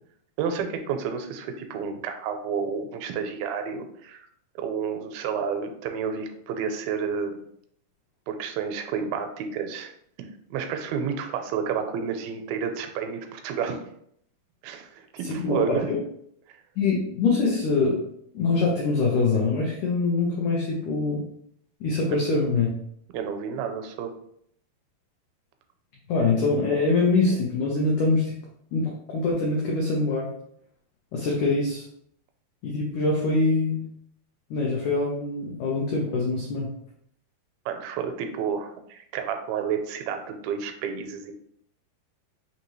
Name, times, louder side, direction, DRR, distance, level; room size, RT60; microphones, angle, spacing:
voice 1, 0.4-4.3 4.6-7.4 8.3-9.9 10.2-13.8 14.6-15.9 23.1-24.1 37.7-41.3, right 6 dB, 85° right, 6 dB, 2.3 m, -30 dB
voice 2, 15.2-15.8 16.8-18.0 18.3-21.2 21.8-22.7 26.1-28.4 28.7-30.3 31.1-31.8 32.6-33.8 34.5-36.7, left 3 dB, 85° left, -2 dB, 1.7 m, -24 dB
5.9 x 2.7 x 3.0 m, 0.69 s
omnidirectional pair, 4.4 m